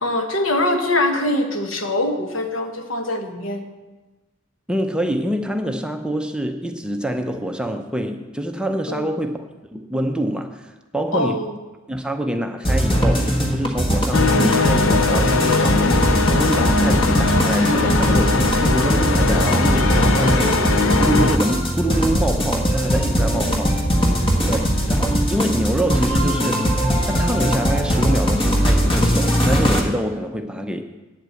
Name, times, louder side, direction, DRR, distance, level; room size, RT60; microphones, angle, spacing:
voice 1, 0.0-3.7 8.9-9.1 11.1-11.6 23.3-23.6 24.4-24.7, left 1 dB, 70° left, 5 dB, 1.3 m, -23 dB
voice 2, 4.7-11.4 11.9-20.7 21.0-23.8 24.5-26.7 27.0-30.8, right 1 dB, 5° right, 5 dB, 0.6 m, -25 dB
sound 1, 12.6-29.8, equal, 25° left, 1.5 m, -20 dB
sound 2, 14.1-21.4, left 3 dB, 85° left, 0.7 m, -20 dB
9.0 x 8.0 x 7.7 m, 1.2 s
head